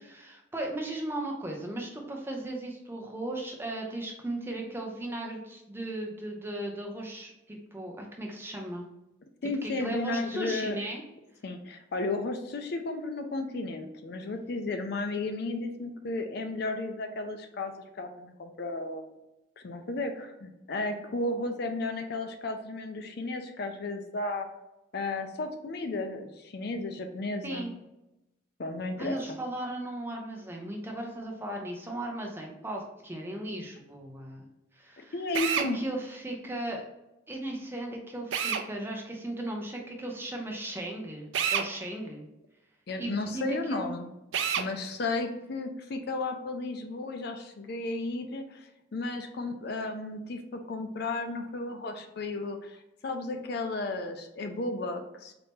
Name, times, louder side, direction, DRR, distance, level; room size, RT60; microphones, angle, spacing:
voice 1, 0.1-8.8 9.6-11.0 27.4-27.7 29.0-34.5 34.7-35.2 35.5-36.8 37.3-42.3 43.0-43.9, right 1 dB, 10° right, 0 dB, 0.6 m, -36 dB
voice 2, 9.4-10.8 11.4-19.2 19.6-24.5 24.9-27.7 28.6-29.4 35.0-35.8 42.9-44.1 44.6-55.3, left 2 dB, 50° left, 6 dB, 0.4 m, -34 dB
Drill, 35.3-35.7 38.3-38.7 41.3-41.7 44.3-44.7, right 7 dB, 65° right, 0.3 m, -28 dB
4.1 x 2.8 x 3.5 m, 0.91 s
head